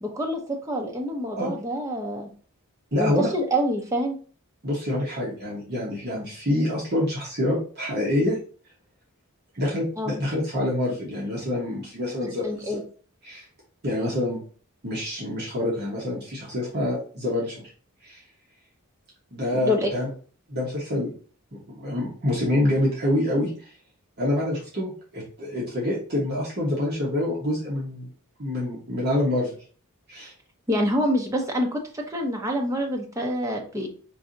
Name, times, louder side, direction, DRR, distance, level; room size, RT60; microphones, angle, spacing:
voice 1, 0.0-2.3 3.0-4.2 10.0-10.1 12.2-12.8 19.5-19.9 30.7-33.9, equal, 15° right, 1 dB, 0.7 m, -26 dB
voice 2, 2.9-3.3 4.6-8.4 9.5-12.8 13.2-13.4 13.8-14.4 14.8-17.6 18.0-18.2 19.3-20.1 20.5-21.1 21.5-23.7 24.2-28.1 28.4-29.5 30.1-30.3, left 1 dB, 45° right, -5 dB, 1.2 m, -26 dB
4.6 x 2.7 x 2.6 m, 0.41 s
head